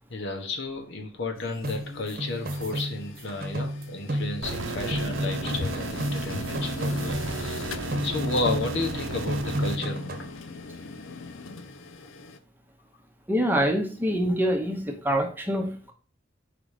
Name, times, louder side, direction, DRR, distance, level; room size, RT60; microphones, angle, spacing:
voice 1, 0.1-10.4, left 3 dB, 65° left, 3 dB, 1.1 m, -33 dB
sound 1, 1.3-12.4, left 4 dB, 80° left, 0.6 m, -40 dB
sound 2, 1.6-4.6 4.9-7.6 7.9-9.0 9.3-10.4, equal, 50° right, 1.0 m, -32 dB
sound 3, 4.4-9.8, right 3 dB, 80° right, 0.7 m, -34 dB
voice 2, 13.3-15.9, equal, 10° right, 3 dB, 0.8 m, -25 dB
5.1 x 3.8 x 4.9 m, 0.41 s
head